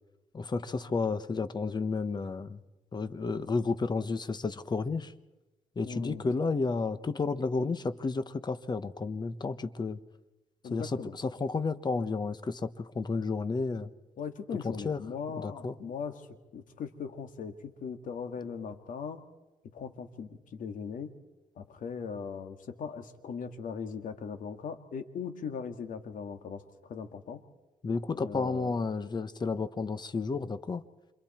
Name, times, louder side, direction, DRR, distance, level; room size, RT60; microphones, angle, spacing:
voice 1, 0.3-2.6 2.9-5.1 5.8-10.0 10.7-13.9 14.6-15.0 15.3-15.7 27.8-30.8, left 4 dB, 30° left, 12 dB, 1.2 m, -32 dB
voice 2, 5.8-6.2 10.6-11.1 14.2-16.3 16.5-19.2 19.7-21.1 21.6-27.4 28.1-28.9, left 6 dB, 70° left, 7 dB, 2.1 m, -39 dB
28.0 x 26.5 x 4.4 m, 1.1 s
cardioid pair, 105°, 14 cm